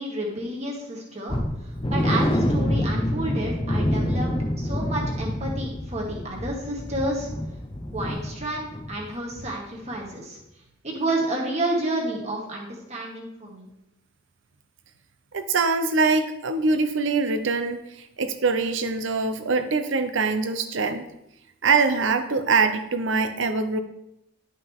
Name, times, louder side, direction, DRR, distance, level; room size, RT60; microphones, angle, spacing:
voice 1, 0.0-1.4 1.9-7.3 7.9-10.4 10.8-13.7, right 1 dB, 30° right, -2 dB, 1.9 m, -30 dB
sound 1, 1.3-9.1 9.3-9.5 9.9-10.0, left 1 dB, 25° left, 0.7 m, -27 dB
voice 2, 15.3-21.1 21.6-23.8, right 4 dB, 65° right, 9 dB, 0.7 m, -23 dB
11.5 x 5.6 x 3.6 m, 0.87 s
head